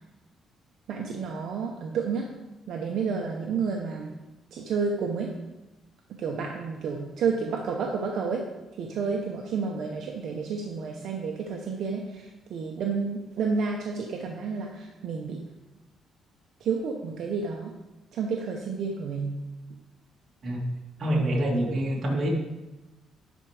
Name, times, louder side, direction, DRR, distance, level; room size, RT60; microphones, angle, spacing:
voice 1, 0.9-2.3 2.7-4.2 4.5-5.3 6.1-8.5 8.8-15.4 16.6-17.7 18.1-19.4, right 5 dB, 60° right, 1 dB, 0.8 m, -30 dB
voice 2, 21.0-22.3, right 1 dB, 35° right, -3 dB, 1.9 m, -26 dB
11.0 x 4.5 x 4.8 m, 1.0 s
cardioid pair, 170°, 0 cm